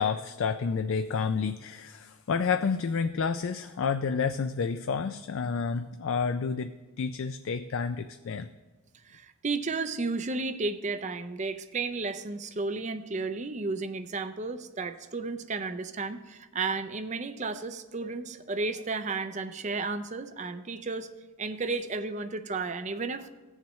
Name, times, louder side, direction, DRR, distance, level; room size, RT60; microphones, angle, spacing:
voice 1, 0.0-8.5, left 5 dB, 65° left, 9 dB, 0.4 m, -30 dB
voice 2, 9.0-21.1 21.4-23.3, right 3 dB, 30° right, 10 dB, 0.5 m, -33 dB
16.5 x 7.2 x 3.1 m, 1.2 s
head